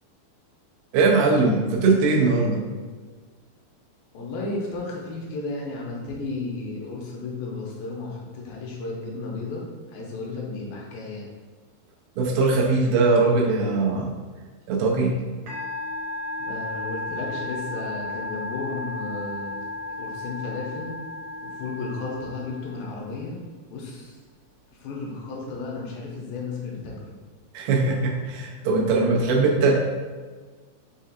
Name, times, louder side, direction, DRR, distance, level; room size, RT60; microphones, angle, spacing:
voice 1, 0.9-2.6 12.2-14.1 14.7-15.2 27.5-29.8, right 3 dB, 90° right, -1 dB, 2.7 m, -20 dB
voice 2, 4.1-11.3 16.4-19.7 20.0-21.0 21.4-23.4 23.7-24.2 24.7-27.1, left 3 dB, 80° left, -3 dB, 2.4 m, -33 dB
Musical instrument, 15.5-23.1, left 2 dB, 70° right, 1.9 m, -34 dB
6.5 x 2.4 x 2.7 m, 1.4 s
omnidirectional pair, 4.3 m